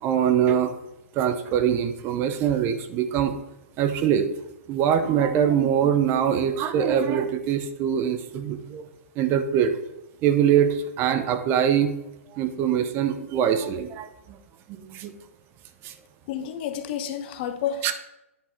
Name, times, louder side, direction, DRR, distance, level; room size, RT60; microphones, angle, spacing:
voice 1, 0.0-0.7 1.1-3.4 3.8-4.3 4.7-8.9 9.2-9.7 10.2-11.9 12.3-14.4 14.7-15.1 15.8-15.9 17.8-17.9, right 9 dB, 30° right, 9 dB, 0.6 m, -23 dB
voice 2, 16.3-17.9, left 9 dB, 45° left, 9 dB, 0.7 m, -30 dB
10.0 x 3.6 x 4.4 m, 0.90 s
hypercardioid pair, 135°, 8 cm